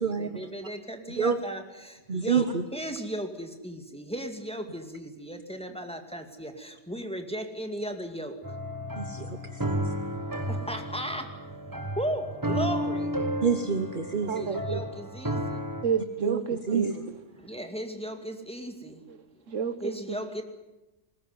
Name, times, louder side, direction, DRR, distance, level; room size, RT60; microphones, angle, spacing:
voice 1, 0.0-8.4 10.5-11.3 12.0-13.1 14.4-15.6 17.4-19.0 19.8-20.4, equal, 5° left, 5 dB, 2.3 m, -36 dB
voice 2, 2.1-2.6 9.0-9.6 13.4-14.4 16.2-16.4 16.7-16.9, right 6 dB, 45° right, 9 dB, 1.2 m, -27 dB
sound 1, 8.4-15.8, equal, 15° right, 1.5 m, -32 dB
voice 3, 14.2-14.8 15.8-17.2 19.5-19.9, right 6 dB, 85° right, 13 dB, 1.6 m, -30 dB
21.0 x 19.5 x 9.7 m, 1.0 s
omnidirectional pair, 1.3 m